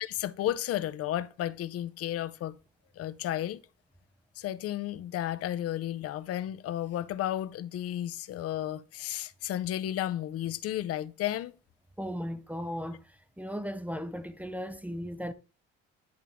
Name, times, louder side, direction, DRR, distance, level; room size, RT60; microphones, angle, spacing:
voice 1, 0.0-2.6 3.0-3.6 4.4-11.5, left 12 dB, 55° left, 0.6 m, -33 dB
voice 2, 12.0-13.0 13.4-15.3, equal, 5° right, 0.4 m, -36 dB
10.5 x 3.6 x 3.5 m
cardioid pair, 125°, 29 cm